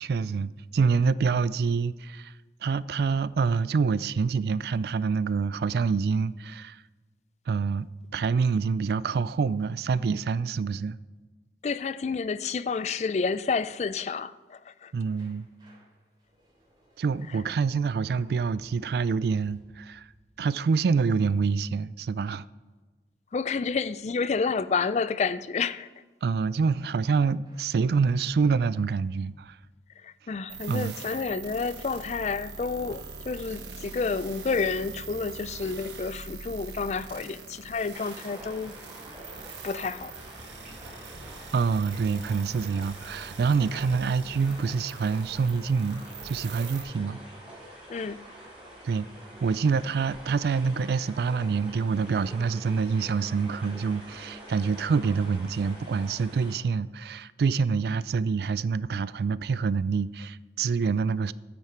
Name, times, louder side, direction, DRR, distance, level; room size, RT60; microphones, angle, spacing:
voice 1, 0.0-2.3 2.6-6.8 7.5-11.0 14.9-15.5 17.0-20.1 20.4-22.5 26.2-29.6 30.7-30.9 41.5-47.2 48.8-49.1 49.4-61.3, right 5 dB, 60° right, 0.3 m, -26 dB
voice 2, 11.6-14.9 23.3-25.9 30.0-38.7 39.6-40.1 47.9-48.2, left 5 dB, 40° left, 0.3 m, -30 dB
sound 1, 15.2-21.9 27.4-29.7, right 1 dB, 25° right, 3.1 m, -58 dB
sound 2, 30.5-46.8, right 4 dB, 85° right, 1.3 m, -43 dB
sound 3, 37.9-56.5, right 1 dB, 5° right, 4.3 m, -46 dB
12.5 x 9.3 x 4.5 m
head